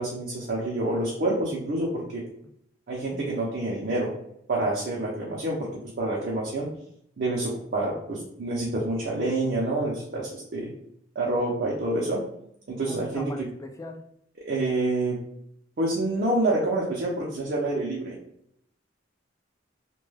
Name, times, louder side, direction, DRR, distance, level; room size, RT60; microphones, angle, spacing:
voice 1, 0.0-2.2 2.9-4.1 4.5-5.7 6.0-6.7 7.2-10.7 11.2-12.2 12.7-13.5 14.4-15.2 15.8-18.2, right 2 dB, 50° right, -4 dB, 0.5 m, -27 dB
voice 2, 12.9-14.0, left 2 dB, 15° left, 4 dB, 0.3 m, -40 dB
2.2 x 2.2 x 3.1 m, 0.73 s
head